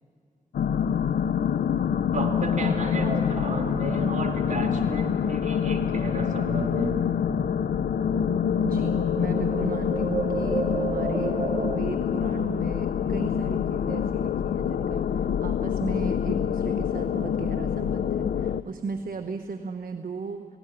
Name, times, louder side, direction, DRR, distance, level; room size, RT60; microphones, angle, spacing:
sound 1, 0.5-18.6, left 8 dB, 85° left, 0.5 m, -26 dB
voice 1, 2.1-7.0, right 2 dB, 55° right, 3 dB, 3.3 m, -32 dB
sound 2, 2.8-6.9 7.2-11.8, right 4 dB, 35° right, 1.2 m, -34 dB
voice 2, 8.6-20.5, right 5 dB, 70° right, 6 dB, 1.0 m, -36 dB
18.5 x 17.5 x 10.0 m, 2.7 s
cardioid pair, 70°, 15 cm